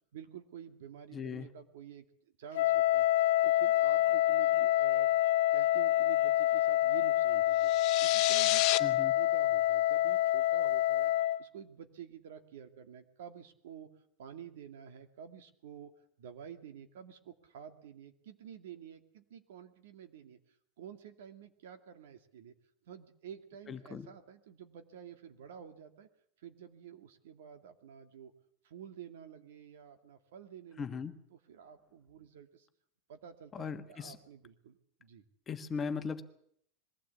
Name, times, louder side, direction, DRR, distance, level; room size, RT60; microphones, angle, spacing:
voice 1, 0.1-2.1 2.4-3.0 3.4-5.1 5.5-7.7 8.0-8.7 9.1-11.1 11.4-13.9 14.2-20.4 20.8-22.5 22.9-26.1 26.4-28.3 28.6-31.0 31.3-32.7 33.1-35.2, right 8 dB, 85° right, 8 dB, 2.4 m, -50 dB
voice 2, 1.1-1.5 8.8-9.1 23.7-24.1 30.8-31.2 33.5-34.2 35.5-36.2, left 5 dB, 20° left, 8 dB, 1.3 m, -38 dB
Wind instrument woodwind instrument, 2.5-11.4, left 14 dB, 85° left, 0.9 m, -27 dB
sound 1, 7.6-8.8, left 18 dB, 45° left, 1.0 m, -30 dB
22.0 x 15.5 x 8.4 m, 0.66 s
supercardioid pair, 160°, 0 cm